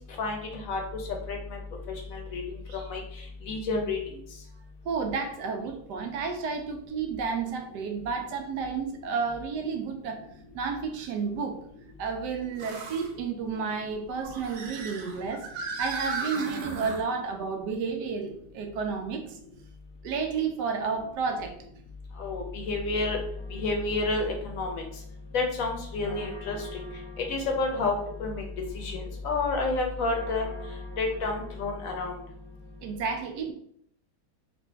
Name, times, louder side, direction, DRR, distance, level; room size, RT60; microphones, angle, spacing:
voice 1, 0.2-1.0 1.3-1.6 2.1-2.4 2.9-3.0 3.5-4.0 22.2-23.2 23.5-24.8 25.3-26.8 27.3-28.4 28.7-30.5 31.0-32.1, left 3 dB, 65° left, 2 dB, 1.0 m, -29 dB
sound 1, 2.7-2.9 3.5-3.6 5.7-5.8 9.3-9.4 12.6-13.1 14.1-17.0, right 4 dB, 65° right, 1.0 m, -36 dB
voice 2, 4.8-10.2 10.5-11.6 12.0-19.4 20.0-21.5 32.8-33.5, right 5 dB, 85° right, 5 dB, 1.2 m, -31 dB
sound 2, 23.3-33.0, equal, 45° right, 1.2 m, -48 dB
4.1 x 2.5 x 3.4 m, 0.68 s
omnidirectional pair, 1.8 m